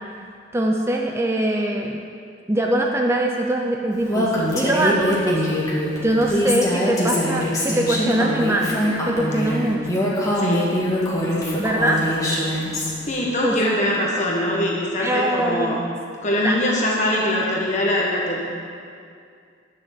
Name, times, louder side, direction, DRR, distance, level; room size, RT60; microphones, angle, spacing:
voice 1, 0.5-2.0 2.5-8.7 9.1-10.0 11.6-12.0 13.4-13.8 15.0-15.7 16.4-16.6, right 1 dB, 15° right, 0 dB, 0.6 m, -22 dB
Female speech woman speaking, 4.1-12.9, equal, 20° left, 1.9 m, -23 dB
voice 2, 10.4-10.7 11.2-11.6 12.2-12.3 12.8-15.8 16.2-18.4, left 1 dB, 40° left, -3 dB, 1.3 m, -23 dB
10.5 x 6.5 x 7.5 m, 2.3 s
head